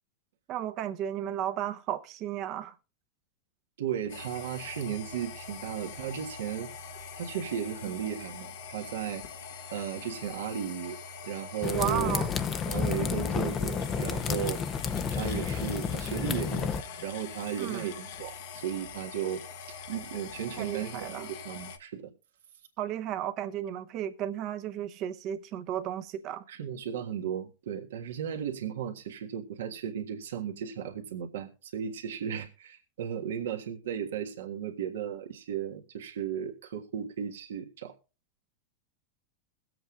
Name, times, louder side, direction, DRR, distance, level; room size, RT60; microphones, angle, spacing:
voice 1, 0.5-2.8 11.7-12.3 17.6-17.9 20.6-21.3 22.8-26.4, right 11 dB, 45° right, 0.9 m, -34 dB
voice 2, 3.8-6.7 7.2-9.2 9.7-11.0 11.2-12.2 12.7-14.6 15.1-19.4 19.9-22.1 26.5-37.9, right 9 dB, 80° right, 1.6 m, -35 dB
sound 1, 4.1-21.8, left 6 dB, 70° left, 1.1 m, -43 dB
sound 2, 11.6-16.8, left 6 dB, 25° left, 0.7 m, -31 dB
21.5 x 7.8 x 2.4 m
hypercardioid pair, 115°, 0 cm